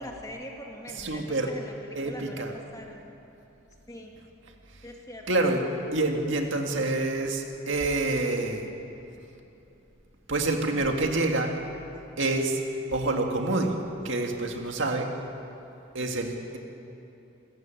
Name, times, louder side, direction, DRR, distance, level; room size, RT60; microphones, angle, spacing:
voice 1, 0.0-2.5 2.7-3.0 3.9-4.1 4.8-5.3, left 1 dB, 15° left, 1 dB, 2.1 m, -42 dB
voice 2, 0.9-1.5 1.9-2.5 5.3-5.6 5.9-8.7 10.3-11.5 12.2-12.6 12.9-13.8 14.0-15.1 15.9-16.6, right 2 dB, 60° right, 3 dB, 2.1 m, -27 dB
29.0 x 14.5 x 9.1 m, 2.9 s
head